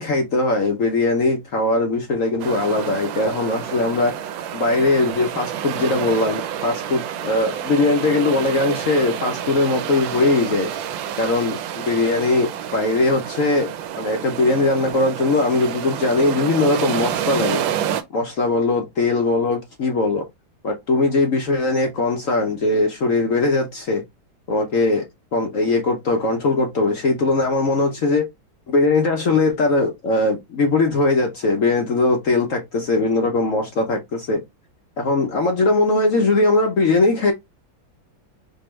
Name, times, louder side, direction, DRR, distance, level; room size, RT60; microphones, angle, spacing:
voice 1, 0.0-4.1 4.5-10.7 11.2-13.7 14.0-17.6 18.1-20.3 20.6-24.0 24.5-25.0 25.3-28.3 28.7-34.4 35.0-37.3, left 2 dB, 60° left, 0.9 m, -20 dB
sound 1, 2.4-18.0, right 9 dB, 80° right, 1.3 m, -29 dB
4.5 x 2.8 x 3.1 m
omnidirectional pair, 2.1 m